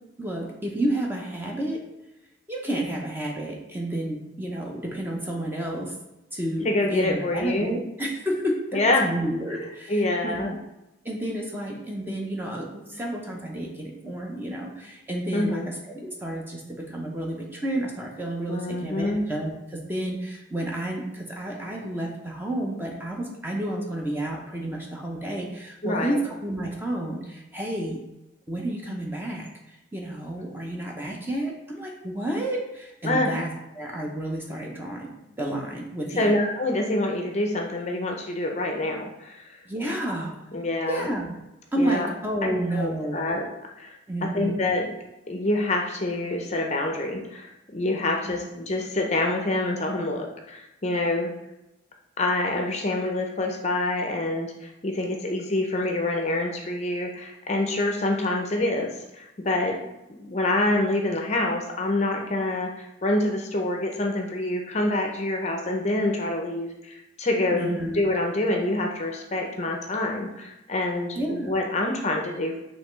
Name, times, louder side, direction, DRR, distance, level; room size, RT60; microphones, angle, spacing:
voice 1, 0.2-1.8 2.5-5.9 6.3-10.6 11.0-28.0 28.5-33.5 33.8-36.3 39.6-40.3 40.9-41.3 41.7-43.2 44.1-44.6 48.3-48.4 67.5-68.0 71.1-71.5, right 1 dB, 10° right, -1 dB, 0.6 m, -30 dB
voice 2, 6.6-7.8 8.7-9.0 9.9-10.5 15.3-15.7 18.5-19.3 25.8-26.2 33.0-33.3 36.2-39.6 40.5-41.1 41.8-42.1 42.4-42.5 42.7-43.5 43.8-43.9 44.2-44.9 45.3-51.3 52.2-59.8 60.2-72.6, left 2 dB, 35° left, 2 dB, 0.5 m, -26 dB
5.4 x 3.2 x 3.1 m, 0.94 s
head